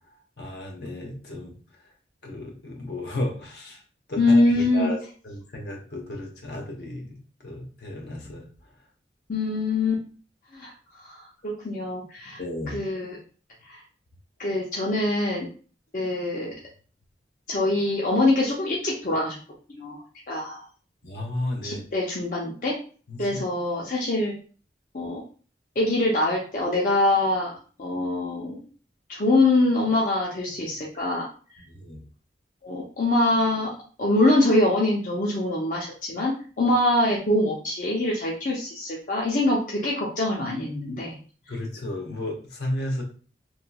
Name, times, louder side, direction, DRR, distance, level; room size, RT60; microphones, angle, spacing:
voice 1, 0.4-1.5 2.2-3.8 4.1-5.0 5.2-7.2 7.4-8.4 12.4-12.8 21.0-21.9 23.1-23.3 31.6-32.0 41.5-43.0, left 1 dB, 65° left, 0 dB, 0.9 m, -33 dB
voice 2, 4.2-4.9 9.3-10.0 10.5-10.7 11.0-12.4 12.7-13.2 13.7-13.8 14.4-15.5 15.9-16.5 17.5-19.4 19.7-20.0 20.3-20.6 21.6-22.8 23.2-24.3 24.9-25.2 25.8-27.5 27.8-28.6 29.1-31.3 32.6-33.7 34.0-41.2, left 2 dB, 45° left, -3 dB, 0.6 m, -24 dB
3.0 x 2.9 x 2.3 m, 0.40 s
head